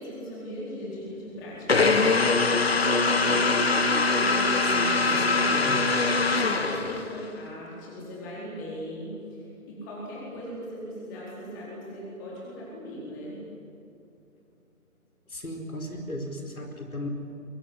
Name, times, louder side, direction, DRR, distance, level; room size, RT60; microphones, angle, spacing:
voice 1, 0.0-2.5 3.1-5.0 5.3-5.9 6.3-9.1 9.7-13.4, equal, 15° left, -5 dB, 4.3 m, -38 dB
sound 1, 1.7-7.3, left 3 dB, 45° left, 1.7 m, -23 dB
voice 2, 4.6-5.8 15.3-17.1, left 1 dB, 70° left, 3 dB, 4.7 m, -36 dB
23.5 x 22.0 x 9.8 m, 2.5 s
figure-of-eight pair, 155°, 44 cm